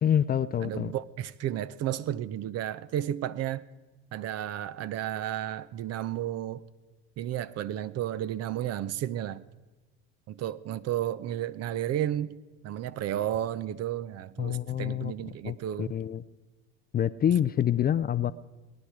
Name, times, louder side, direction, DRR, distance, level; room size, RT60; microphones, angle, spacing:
voice 1, 0.0-0.9 14.4-15.1 15.4-16.2 16.9-18.3, left 9 dB, 30° left, 0.4 m, -27 dB
voice 2, 0.6-3.7 4.1-6.6 7.2-9.4 10.3-12.4 12.6-15.9, right 11 dB, 45° right, 0.6 m, -32 dB
19.5 x 10.0 x 4.9 m
hypercardioid pair, 70°, 34 cm